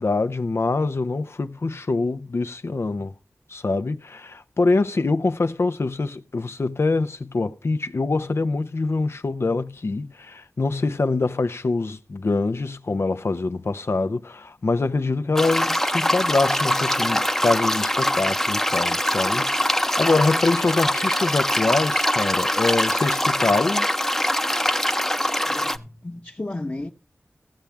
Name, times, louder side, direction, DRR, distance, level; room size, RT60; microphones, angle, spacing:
voice 1, 0.0-3.1 3.5-23.9, left 3 dB, 65° left, 0.7 m, -24 dB
sound 1, 15.4-25.8, left 1 dB, 10° left, 0.7 m, -23 dB
voice 2, 25.5-26.9, left 2 dB, 35° left, 1.0 m, -33 dB
16.5 x 7.3 x 3.4 m
wide cardioid pair, 55°, 5 cm